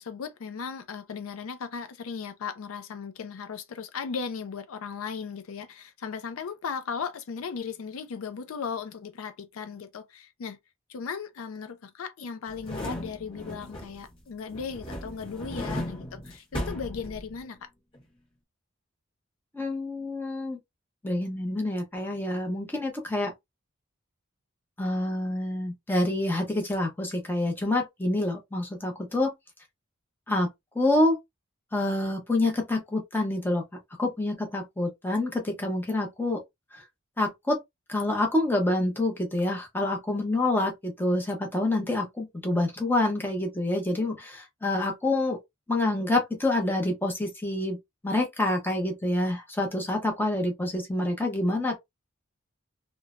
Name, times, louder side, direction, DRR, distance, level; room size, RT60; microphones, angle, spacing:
voice 1, 0.0-10.6 10.9-17.7, left 6 dB, 75° left, 0.4 m, -37 dB
sound 1, 12.5-14.1 14.5-17.6 17.9-18.0, left 1 dB, 25° left, 1.1 m, -36 dB
voice 2, 19.5-20.6 21.0-23.3 24.8-29.3 30.3-30.5 30.7-31.2 31.7-33.6 34.0-36.4 36.7-36.8 37.2-37.6 37.9-45.4 45.7-47.8 48.0-51.8, left 2 dB, 10° left, 0.7 m, -27 dB
3.0 x 2.1 x 2.4 m
head